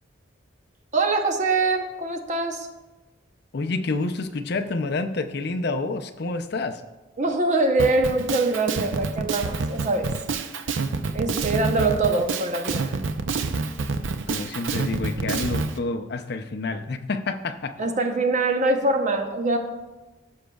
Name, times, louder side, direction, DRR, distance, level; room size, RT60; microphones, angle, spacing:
voice 1, 0.9-2.7 7.2-10.1 11.1-13.0 17.8-19.6, right 2 dB, 35° right, 5 dB, 0.7 m, -23 dB
voice 2, 3.5-6.8 14.3-17.8, left 3 dB, 55° left, 7 dB, 0.5 m, -28 dB
Drum kit, 7.8-15.7, right 4 dB, 70° right, 0.5 m, -27 dB
15.0 x 6.2 x 2.3 m, 1.2 s
head